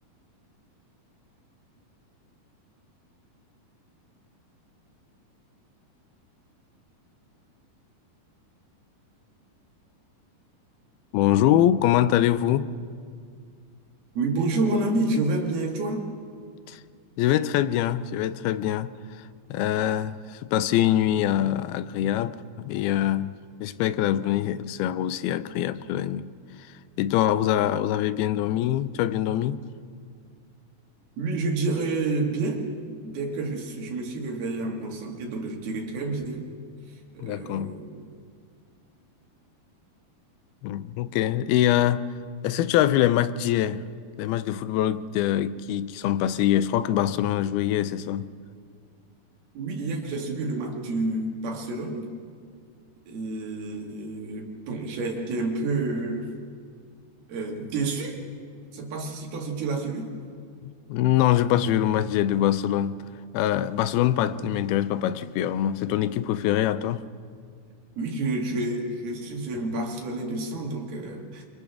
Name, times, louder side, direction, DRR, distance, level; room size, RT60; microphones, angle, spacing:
voice 1, 11.1-12.7 16.7-16.8 17.2-18.9 19.5-23.3 23.6-26.3 27.0-29.6 37.2-37.8 40.6-42.1 42.4-43.8 44.2-48.3 60.6-63.0 63.3-67.0, left 12 dB, 85° left, 2.6 m, -24 dB
voice 2, 14.2-16.1 31.2-36.5 37.1-38.1 49.5-52.1 53.1-56.3 57.3-58.2 58.7-60.1 68.0-71.5, right 2 dB, 80° right, 4.1 m, -29 dB
29.5 x 25.5 x 3.6 m
omnidirectional pair, 4.3 m